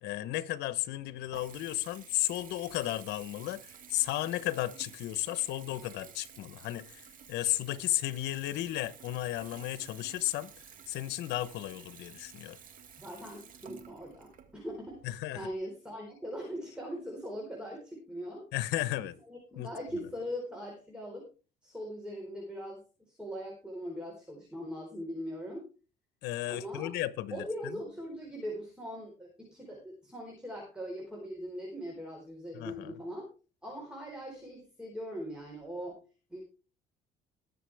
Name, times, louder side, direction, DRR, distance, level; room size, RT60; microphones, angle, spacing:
voice 1, 0.0-10.5 10.9-12.6 15.0-15.5 18.5-19.2 19.6-20.0 26.2-27.8 32.5-32.9, left 15 dB, 85° left, 1.0 m, -34 dB
Water tap faucet / Bathtub (filling or washing) / Trickle dribble, 0.7-15.5, right 8 dB, 55° right, 2.0 m, -53 dB
voice 2, 13.0-15.0 15.3-18.5 19.3-21.3 21.6-25.7 26.5-26.9 27.3-33.3 33.6-36.0 36.3-36.4, equal, 5° right, 4.2 m, -41 dB
20.5 x 6.9 x 3.4 m
cardioid pair, 110°, 17 cm